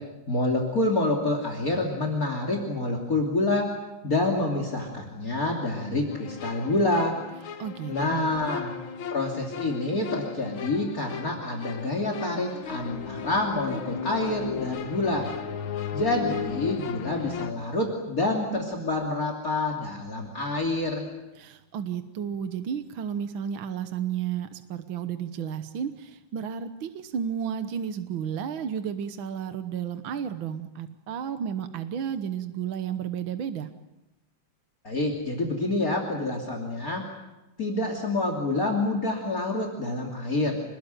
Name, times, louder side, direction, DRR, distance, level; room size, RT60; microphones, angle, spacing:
voice 1, 0.3-3.7 4.0-7.2 7.9-8.7 9.1-15.3 15.9-21.0 34.8-37.0 37.6-40.6, left 2 dB, 45° left, 3 dB, 3.4 m, -27 dB
sound 1, 6.1-17.5, left 7 dB, 80° left, 2.1 m, -36 dB
voice 2, 7.6-8.5 21.4-33.7, right 8 dB, 75° right, 9 dB, 1.9 m, -32 dB
27.5 x 20.5 x 9.2 m, 1.0 s
omnidirectional pair, 2.2 m